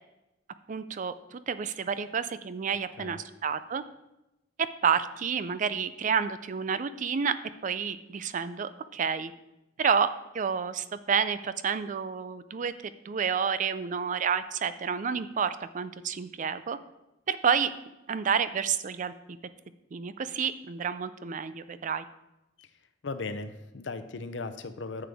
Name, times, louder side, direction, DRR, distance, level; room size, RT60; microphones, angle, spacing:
voice 1, 0.7-3.8 4.8-7.3 7.6-9.3 9.8-10.1 10.3-12.7 13.1-16.8 17.3-17.7 18.1-19.1 19.9-22.0, right 6 dB, 45° right, 13 dB, 0.4 m, -29 dB
voice 2, 23.0-25.1, left 3 dB, 75° left, 10 dB, 0.6 m, -37 dB
9.8 x 6.8 x 3.5 m, 0.95 s
head